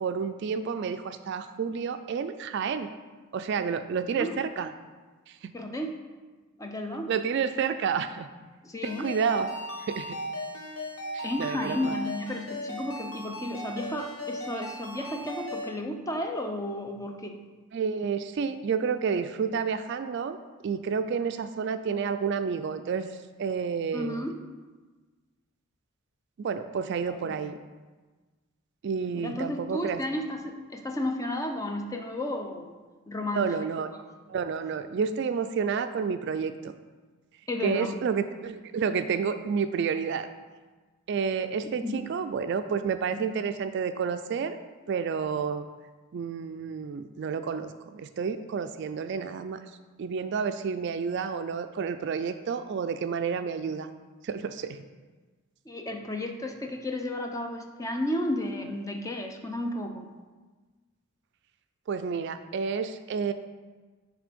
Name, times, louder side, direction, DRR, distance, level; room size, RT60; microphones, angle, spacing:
voice 1, 0.0-2.9 3.3-4.7 5.4-5.5 7.1-8.3 9.0-9.5 9.9-10.2 11.1-11.9 17.7-20.4 20.6-23.1 23.4-24.3 26.4-27.6 28.8-30.0 33.3-33.9 34.3-36.5 37.6-40.3 41.1-44.6 44.9-45.7 46.1-49.6 50.0-53.9 54.2-54.8 61.9-63.3, right 6 dB, 50° right, 10 dB, 0.3 m, -30 dB
voice 2, 5.5-6.0 6.6-7.1 8.6-9.1 11.2-17.4 23.9-24.4 27.1-27.3 29.1-32.7 33.1-33.5 37.5-38.0 41.6-42.1 55.7-60.1, left 1 dB, 15° left, 3 dB, 0.5 m, -33 dB
Ringtone, 8.8-15.7, equal, 80° left, 1.2 m, -37 dB
9.8 x 3.3 x 5.2 m, 1.3 s
head